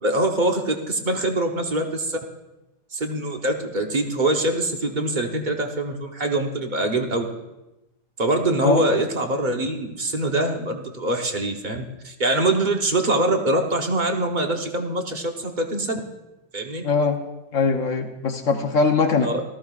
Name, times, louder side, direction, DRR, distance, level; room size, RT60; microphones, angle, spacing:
voice 1, 0.0-2.2 2.9-7.2 8.2-16.0 16.5-16.8 19.2-19.4, right 1 dB, 40° right, 3 dB, 0.7 m, -24 dB
voice 2, 16.8-17.2 17.5-19.3, left 4 dB, 55° left, 5 dB, 1.0 m, -21 dB
18.0 x 14.0 x 2.4 m, 0.99 s
omnidirectional pair, 2.1 m